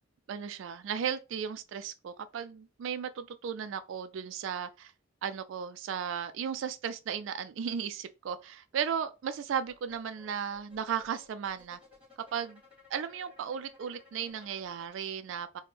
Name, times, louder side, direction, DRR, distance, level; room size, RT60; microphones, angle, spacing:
voice 1, 0.3-4.9 5.2-11.8 12.3-12.6 12.9-15.6, right 7 dB, 65° right, 0.3 m, -35 dB
sound 1, 9.6-14.9, left 4 dB, 5° right, 1.2 m, -59 dB
4.2 x 2.1 x 3.2 m
head